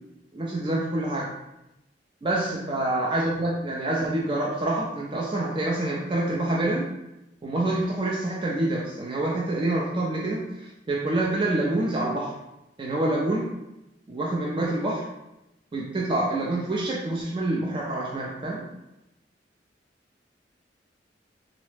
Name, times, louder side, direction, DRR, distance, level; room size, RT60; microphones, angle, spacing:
voice 1, 0.3-1.3 2.2-6.9 7.4-12.3 12.8-13.5 14.1-15.0 15.7-18.6, right 2 dB, 30° right, -4 dB, 0.4 m, -27 dB
3.8 x 2.1 x 3.2 m, 0.90 s
head